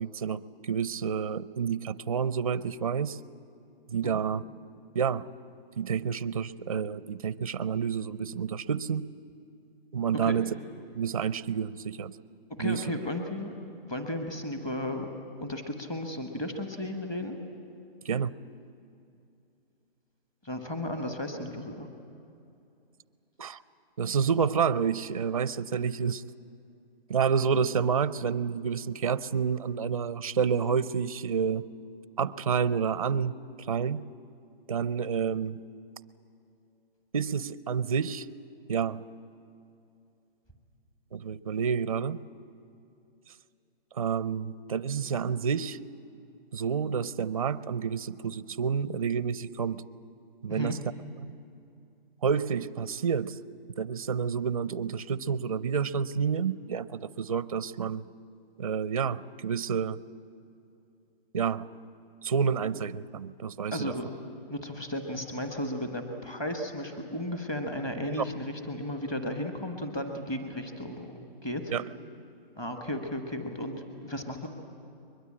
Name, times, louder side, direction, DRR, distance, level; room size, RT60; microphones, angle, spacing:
voice 1, 0.0-3.2 3.9-4.4 4.9-5.3 5.8-9.1 9.9-10.5 10.9-12.2 12.6-12.8 18.0-18.3 23.4-23.6 24.0-26.2 27.1-31.7 32.2-33.4 33.7-34.0 34.7-35.6 37.1-38.3 38.7-39.0 41.1-42.2 43.9-45.8 46.5-49.8 50.4-50.8 52.2-53.4 53.8-58.1 58.6-60.0 61.3-61.7 62.2-63.9 68.2-68.3 71.7-71.8, right 6 dB, 35° right, 17 dB, 0.5 m, -29 dB
voice 2, 12.5-13.5 13.8-15.1 15.4-17.4 20.4-21.9 50.5-50.7 63.7-64.0 64.5-71.7 72.6-74.5, left 1 dB, 10° left, 5 dB, 1.2 m, -34 dB
22.0 x 22.0 x 8.6 m, 2.7 s
hypercardioid pair, 170°, 30 cm